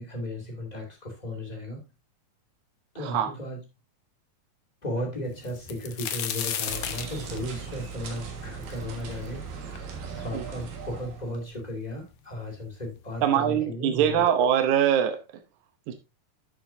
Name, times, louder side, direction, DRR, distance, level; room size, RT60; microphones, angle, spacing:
voice 1, 0.0-1.8 2.9-3.6 4.8-14.2, left 1 dB, 15° left, 0 dB, 2.2 m, -35 dB
sound 1, 5.4-9.3 9.8-9.9 10.6-10.7 11.0-11.6 12.5-12.6 13.0-13.2, left 9 dB, 80° left, 1.2 m, -34 dB
sound 2, 6.7-11.4, right 5 dB, 90° right, 3.4 m, -39 dB
voice 2, 13.2-15.2 15.9-16.0, right 9 dB, 70° right, 7 dB, 2.2 m, -23 dB
11.0 x 6.8 x 2.7 m, 0.24 s
omnidirectional pair, 3.8 m